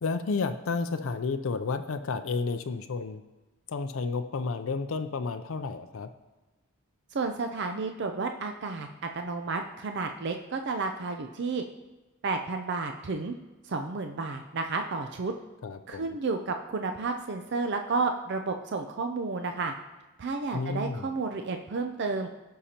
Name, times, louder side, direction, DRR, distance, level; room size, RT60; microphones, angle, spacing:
voice 1, 0.0-3.2 3.7-6.1 15.6-16.2 20.5-21.1, left 4 dB, 60° left, 7 dB, 0.4 m, -31 dB
voice 2, 7.1-11.6 12.2-13.3 13.6-15.3 15.9-19.7 20.2-22.3, right 3 dB, 50° right, 5 dB, 0.5 m, -31 dB
15.0 x 5.6 x 2.9 m, 1.1 s
head